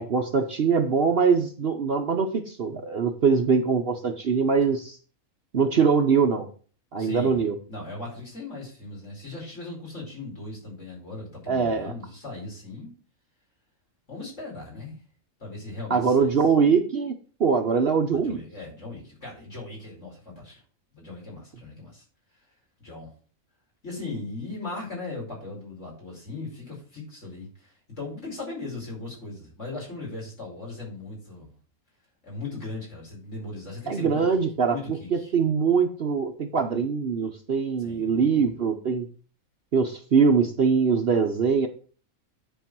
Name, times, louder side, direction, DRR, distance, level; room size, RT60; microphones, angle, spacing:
voice 1, 0.0-5.0 5.5-6.5 6.9-7.6 11.5-11.9 15.9-17.1 17.4-18.4 33.9-34.8 35.1-39.1 39.7-41.7, right 5 dB, 50° right, 5 dB, 0.9 m, -22 dB
voice 2, 7.0-7.4 7.7-12.9 14.1-15.0 15.4-16.3 18.1-20.6 20.9-22.0 22.8-23.1 23.8-31.5 32.2-34.4 34.7-35.3 37.8-38.5, left 3 dB, 55° left, -3 dB, 5.2 m, -38 dB
10.5 x 4.7 x 6.0 m, 0.41 s
omnidirectional pair, 1.5 m